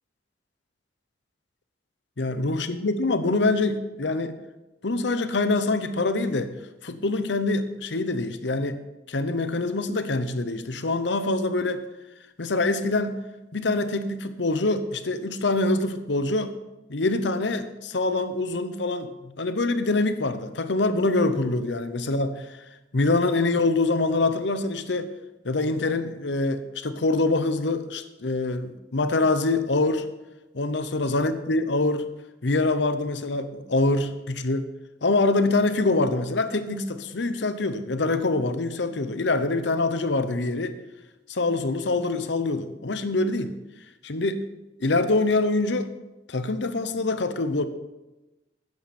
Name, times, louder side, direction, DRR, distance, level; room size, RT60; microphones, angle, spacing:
voice 1, 2.2-4.4 4.8-6.5 6.8-8.8 9.1-11.8 12.4-13.2 13.5-16.5 16.9-22.6 22.9-25.1 25.4-30.0 30.5-32.0 32.4-34.7 35.0-40.8 41.3-43.5 44.0-44.4 44.8-45.9 46.3-47.6, left 2 dB, 75° left, 11 dB, 0.9 m, -25 dB
13.0 x 9.2 x 4.3 m, 1.0 s
head